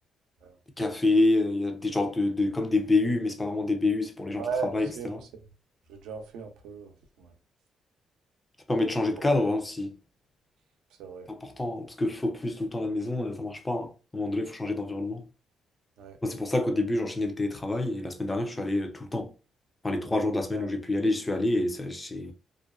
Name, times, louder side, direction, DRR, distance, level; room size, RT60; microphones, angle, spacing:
voice 1, 0.8-5.2 8.7-10.0 11.3-15.3 16.2-19.3 19.8-22.3, left 2 dB, 20° left, 0.5 m, -27 dB
voice 2, 4.4-5.2 5.9-6.9 7.2-7.3 11.0-11.3 16.0-16.2 20.5-20.7, right 5 dB, 85° right, 0.5 m, -36 dB
2.4 x 2.2 x 2.3 m
cardioid pair, 90°, 0 cm